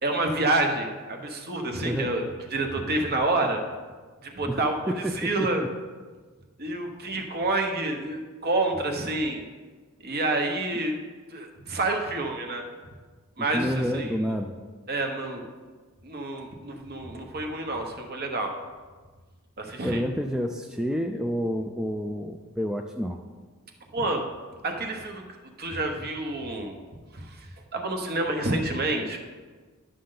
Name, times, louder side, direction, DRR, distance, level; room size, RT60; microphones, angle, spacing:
voice 1, 0.0-3.6 4.2-5.6 6.6-9.4 10.0-10.9 11.3-12.6 13.4-14.1 14.9-15.5 16.0-18.5 19.6-20.0 23.9-24.2 24.6-26.8 27.1-29.2, right 2 dB, 45° right, 3 dB, 1.1 m, -28 dB
voice 2, 1.8-2.1 4.5-5.7 13.4-14.6 19.8-23.2, equal, 5° right, 3 dB, 0.3 m, -29 dB
11.0 x 6.4 x 3.9 m, 1.4 s
head